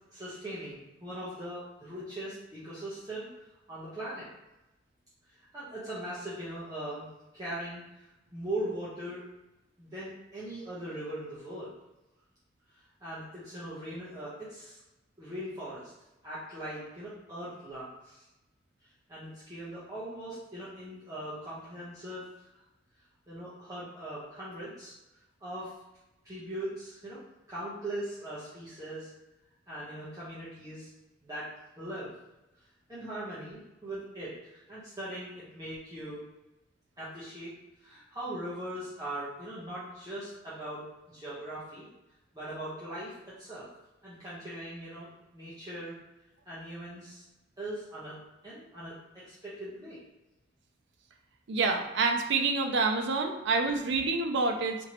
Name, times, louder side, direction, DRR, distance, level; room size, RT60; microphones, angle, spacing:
voice 1, 0.1-3.3 3.7-4.3 5.5-7.1 7.3-7.8 8.3-9.2 9.8-11.7 13.0-14.8 15.2-15.9 16.2-18.3 19.1-22.2 23.3-24.9 25.4-25.7 26.2-27.2 27.5-29.1 29.7-30.9 31.2-32.1 32.9-36.2 37.0-37.5 37.8-41.9 42.3-43.1 43.4-43.7 44.0-46.0 46.4-47.2 47.6-48.9 49.3-50.0, right 1 dB, 20° right, -11 dB, 0.9 m, -40 dB
voice 2, 51.5-54.8, right 4 dB, 65° right, 4 dB, 0.5 m, -27 dB
4.3 x 2.9 x 3.0 m, 0.96 s
head